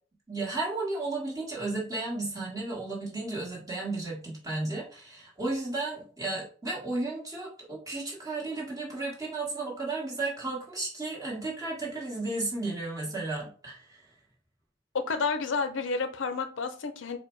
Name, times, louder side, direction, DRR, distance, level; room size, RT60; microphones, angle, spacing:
voice 1, 0.3-14.0, right 2 dB, 20° right, -4 dB, 1.6 m, -33 dB
voice 2, 14.9-17.2, left 4 dB, 70° left, 9 dB, 0.5 m, -30 dB
4.7 x 2.2 x 4.5 m, 0.40 s
head